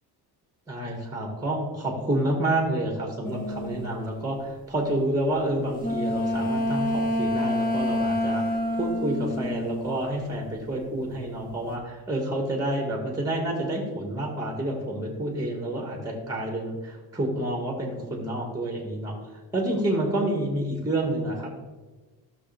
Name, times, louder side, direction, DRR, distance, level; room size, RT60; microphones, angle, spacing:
voice 1, 0.7-19.1 19.5-21.6, right 1 dB, 10° right, 0 dB, 1.9 m, -29 dB
sound 1, 3.2-3.9 5.8-10.5 10.7-11.5, left 1 dB, 20° left, 1.7 m, -27 dB
13.0 x 6.7 x 3.5 m, 1.3 s
cardioid pair, 120°, 39 cm